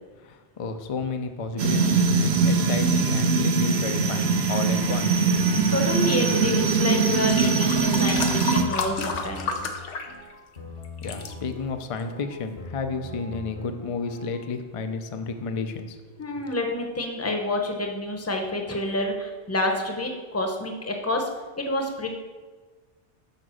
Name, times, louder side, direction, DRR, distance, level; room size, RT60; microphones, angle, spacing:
voice 1, 0.2-5.2 5.6-5.7 11.0-16.3, left 4 dB, 45° left, 7 dB, 0.4 m, -32 dB
sound 1, 1.6-8.6, right 4 dB, 70° right, 0.9 m, -22 dB
voice 2, 5.7-9.5 16.2-21.3 21.6-22.1, left 1 dB, 15° left, 3 dB, 0.8 m, -28 dB
sound 2, 6.6-14.5, left 1 dB, 65° left, 1.4 m, -41 dB
sound 3, 7.1-10.6 10.8-11.3 12.0-12.1, left 4 dB, 90° left, 1.1 m, -31 dB
6.6 x 4.9 x 6.3 m, 1.4 s
omnidirectional pair, 1.2 m